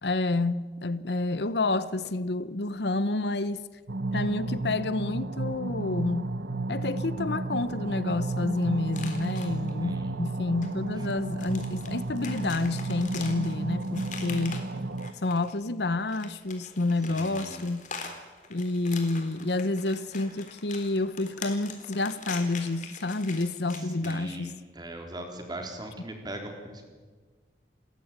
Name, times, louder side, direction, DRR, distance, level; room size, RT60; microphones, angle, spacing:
voice 1, 0.0-3.6 4.1-6.3 6.7-14.7 15.2-17.8 18.5-24.5, left 2 dB, 70° left, 0.9 m, -29 dB
sound 1, 3.9-15.1, right 2 dB, 90° right, 1.1 m, -33 dB
sound 2, 8.9-9.7 10.6-10.7 11.1-15.6 16.0-24.5, left 5 dB, 45° left, 3.6 m, -42 dB
voice 2, 9.8-10.2 17.1-17.6 24.0-26.9, right 1 dB, 25° right, 3.9 m, -40 dB
29.0 x 14.0 x 8.9 m
head